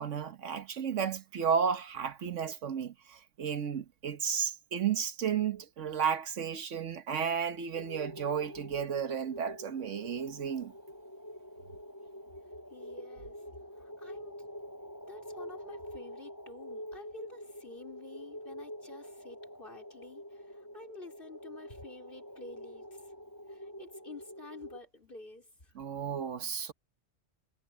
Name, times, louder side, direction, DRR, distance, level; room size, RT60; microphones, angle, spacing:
voice 1, 0.0-10.7 25.7-26.7, right 7 dB, 75° right, 1.4 m, -33 dB
sound 1, 7.7-24.8, equal, 15° left, 7.3 m, -46 dB
voice 2, 12.7-13.4 13.8-14.4 15.1-23.0 23.5-25.7, left 3 dB, 45° left, 4.6 m, -50 dB
omnidirectional pair, 1.3 m